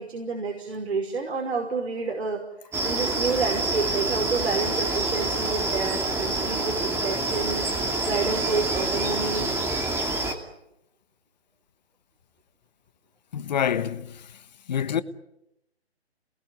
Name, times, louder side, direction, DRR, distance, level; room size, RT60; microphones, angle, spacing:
voice 1, 0.0-2.4 2.8-7.6 8.0-9.5, right 4 dB, 70° right, 5.7 m, -29 dB
sound 1, 2.7-10.3, right 2 dB, 10° right, 2.6 m, -27 dB
voice 2, 13.3-14.3 14.7-15.0, left 8 dB, 40° left, 1.3 m, -26 dB
28.0 x 21.0 x 9.6 m
figure-of-eight pair, 145°, 32 cm